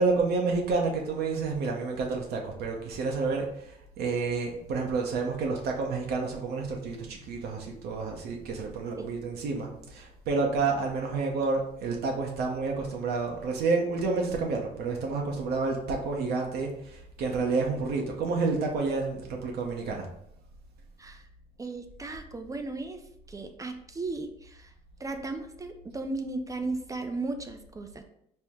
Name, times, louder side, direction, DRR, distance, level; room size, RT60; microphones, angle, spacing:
voice 1, 0.0-20.1, right 4 dB, 70° right, 1 dB, 0.7 m, -29 dB
voice 2, 21.6-23.0 23.3-24.7 25.0-28.0, right 3 dB, 20° right, 6 dB, 0.4 m, -35 dB
4.4 x 2.0 x 3.5 m, 0.74 s
cardioid pair, 110°, 17 cm